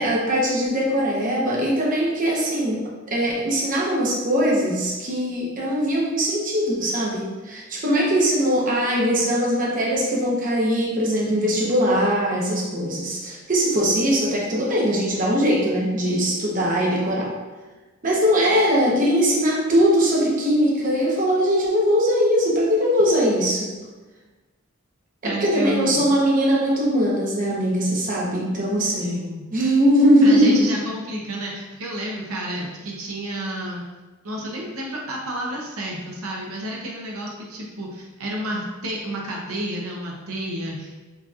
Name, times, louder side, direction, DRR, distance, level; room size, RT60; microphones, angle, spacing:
voice 1, 0.0-17.3 18.0-23.7 25.2-29.2 29.5-30.7, equal, 40° right, -4 dB, 0.9 m, -21 dB
voice 2, 25.2-26.0 29.0-29.5 30.2-33.8 34.2-41.0, right 1 dB, 80° right, -2 dB, 0.8 m, -30 dB
6.5 x 2.9 x 2.4 m, 1.2 s
head